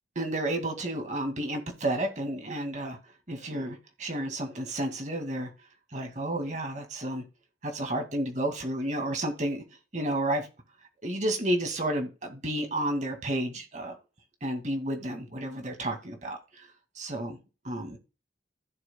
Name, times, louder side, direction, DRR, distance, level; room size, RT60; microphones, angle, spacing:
voice 1, 0.2-3.0 3.3-5.5 5.9-7.2 7.6-9.6 9.9-10.5 11.0-13.9 14.4-16.7 17.0-17.4 17.6-18.0, right 1 dB, 40° right, 4 dB, 2.2 m, -31 dB
15.5 x 6.8 x 2.3 m, 0.30 s
head